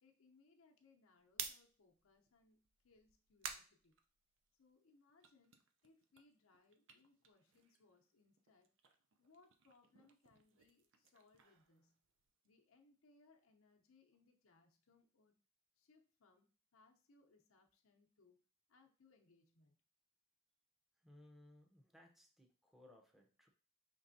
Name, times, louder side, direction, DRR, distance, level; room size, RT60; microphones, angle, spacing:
voice 1, 0.0-4.0 4.5-5.6 5.8-8.7 9.2-12.0 12.4-15.4 15.8-18.4 18.7-19.8, left 3 dB, 85° left, 2 dB, 0.7 m, -71 dB
sound 1, 1.2-4.7 5.1-8.0 8.3-12.5, right 7 dB, 65° right, 0.5 m, -54 dB
voice 2, 21.0-23.5, left 1 dB, ahead, 1 dB, 0.6 m, -64 dB
5.2 x 3.3 x 2.6 m, 0.39 s
head